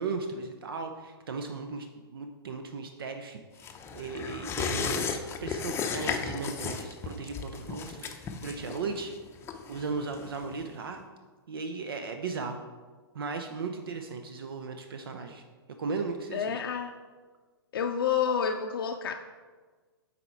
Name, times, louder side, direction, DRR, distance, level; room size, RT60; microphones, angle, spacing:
voice 1, 0.0-9.1 9.7-11.0 11.5-12.6 13.1-15.4 15.8-16.6, right 4 dB, 65° right, 6 dB, 0.6 m, -36 dB
sound 1, 3.6-10.7 11.0-11.1, left 5 dB, 20° left, 0.6 m, -35 dB
voice 2, 16.3-16.9 17.7-19.1, left 7 dB, 65° left, 3 dB, 0.5 m, -29 dB
7.7 x 4.2 x 4.4 m, 1.4 s
figure-of-eight pair, 110°, 13 cm